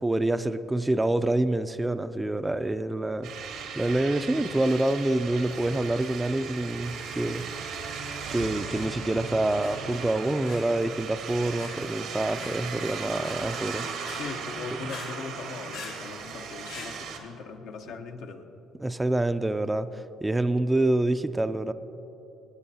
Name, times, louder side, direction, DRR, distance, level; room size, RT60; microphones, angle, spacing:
voice 1, 0.0-7.4 8.3-13.9 18.8-21.7, right 2 dB, 15° right, 11 dB, 0.5 m, -27 dB
sound 1, 3.2-17.2, right 6 dB, 80° right, 1.6 m, -37 dB
sound 2, 5.9-17.0, left 4 dB, 90° left, 2.3 m, -47 dB
voice 2, 14.2-18.5, left 5 dB, 70° left, 3 dB, 1.0 m, -39 dB
25.0 x 9.8 x 2.8 m, 3.0 s
supercardioid pair, 65°, 0 cm